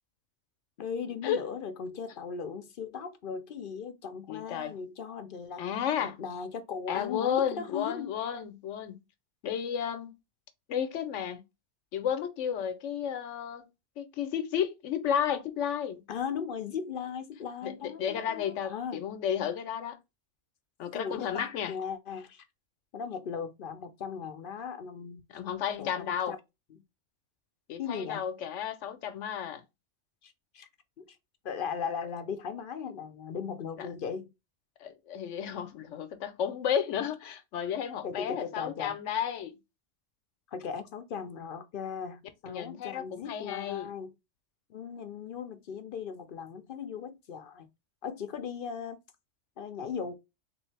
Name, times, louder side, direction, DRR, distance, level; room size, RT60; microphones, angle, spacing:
voice 1, 0.8-5.7 6.0-8.1 16.1-19.0 20.9-22.4 22.9-25.2 25.8-26.4 26.7-26.8 27.8-28.2 30.2-30.7 31.0-31.2 31.4-34.3 38.0-39.0 40.5-44.1 44.7-47.7 48.0-49.0 49.6-50.1, left 6 dB, 60° left, 0.6 m, -38 dB
voice 2, 4.3-4.7 5.6-6.2 6.9-9.0 9.4-10.1 10.7-11.4 11.9-13.7 14.0-16.0 17.6-20.0 20.8-21.7 25.3-26.3 27.7-29.6 33.8-33.9 34.8-39.6 42.5-43.9, left 8 dB, 85° left, 1.0 m, -32 dB
3.5 x 3.1 x 3.2 m
omnidirectional pair, 1.2 m